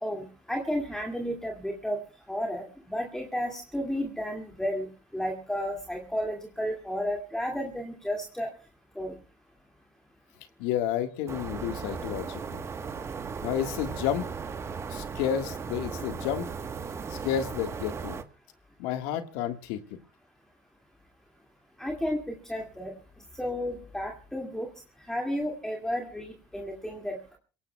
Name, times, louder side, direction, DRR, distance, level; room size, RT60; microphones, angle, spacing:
voice 1, 0.0-2.0 2.3-4.9 5.1-8.5 9.0-9.1 21.8-22.9 23.3-24.7 25.0-27.4, equal, 5° left, 0 dB, 2.4 m, -32 dB
voice 2, 10.6-12.6 13.4-14.2 14.9-16.5 17.1-18.2 18.8-19.8, left 10 dB, 80° left, 7 dB, 1.7 m, -31 dB
sound 1, 11.3-18.2, right 5 dB, 30° right, 1.3 m, -37 dB
28.0 x 18.0 x 2.3 m, 0.37 s
supercardioid pair, 95°, 9 cm